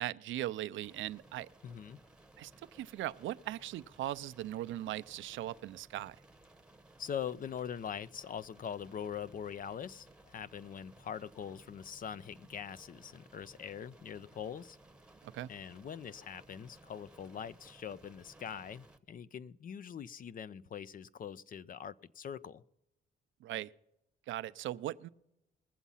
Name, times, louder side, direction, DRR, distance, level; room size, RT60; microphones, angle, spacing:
voice 1, 0.0-1.5 2.4-6.2 15.2-15.5 23.4-23.7 24.3-25.1, right 13 dB, 75° right, 0.5 m, -39 dB
sound 1, 0.8-19.0, right 2 dB, 5° right, 1.0 m, -60 dB
voice 2, 1.6-2.0 7.0-14.8 15.5-22.6, left 8 dB, 45° left, 0.5 m, -43 dB
20.5 x 7.2 x 5.6 m
cardioid pair, 90°, 20 cm